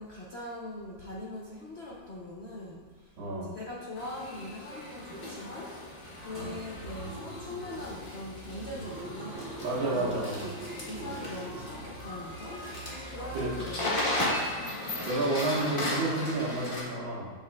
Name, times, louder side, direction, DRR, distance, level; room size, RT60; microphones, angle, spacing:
voice 1, 0.0-10.1 10.8-14.8, left 1 dB, 75° left, -4 dB, 0.6 m, -42 dB
voice 2, 3.2-3.5 6.3-6.6 9.6-10.4 11.0-11.1 13.3-13.5 15.0-17.3, right 2 dB, 75° right, -5 dB, 2.2 m, -30 dB
sound 1, 4.0-16.8, left 1 dB, 30° left, 1.2 m, -36 dB
Car / Engine starting, 6.0-14.8, right 3 dB, 55° right, 1.1 m, -45 dB
7.4 x 6.8 x 2.3 m, 1.5 s
omnidirectional pair, 2.2 m